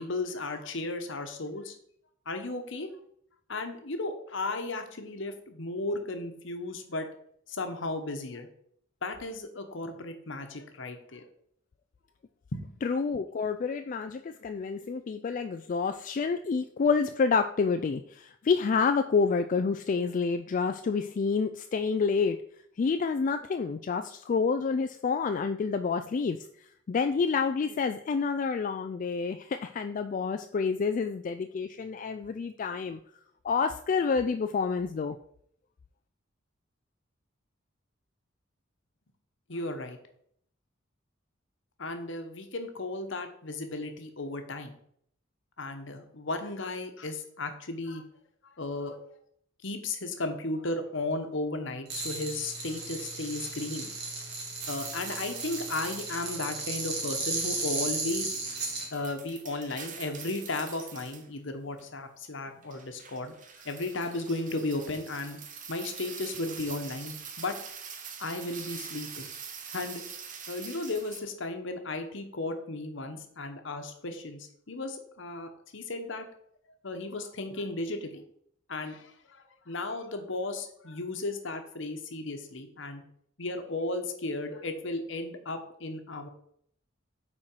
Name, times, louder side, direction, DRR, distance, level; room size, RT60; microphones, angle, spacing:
voice 1, 0.0-1.7 2.3-2.9 3.5-7.1 7.5-8.5 9.0-11.3 12.5-12.6 39.5-40.0 41.8-44.8 45.6-48.0 48.6-49.0 49.6-53.9 54.7-58.4 58.9-63.4 63.6-65.4 65.7-67.5 68.2-69.3 69.7-70.0 70.5-76.3 76.8-78.2 78.7-83.0 83.4-86.3, left 2 dB, 65° left, 6 dB, 1.1 m, -35 dB
voice 2, 12.8-22.4 22.8-26.4 26.9-33.0 33.4-35.2, left 5 dB, 40° left, 8 dB, 0.3 m, -28 dB
sound 1, 51.9-58.9, right 3 dB, 55° right, 2.3 m, -35 dB
sound 2, 54.6-56.3 57.3-61.3 61.8-61.9 62.6-71.2, right 7 dB, 40° right, 1.0 m, -44 dB
8.7 x 4.4 x 4.6 m, 0.66 s
head